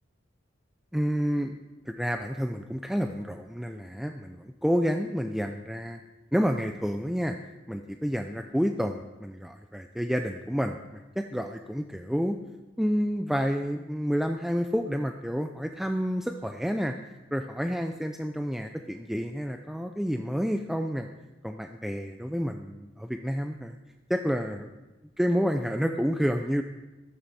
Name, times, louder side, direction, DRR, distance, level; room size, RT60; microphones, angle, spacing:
voice 1, 0.9-1.6 1.9-6.0 6.3-7.3 7.7-12.4 12.8-16.9 17.3-21.1 21.4-23.8 24.1-24.7 25.2-26.6, equal, ahead, 5 dB, 0.4 m, -29 dB
14.0 x 13.0 x 4.2 m, 1.1 s
head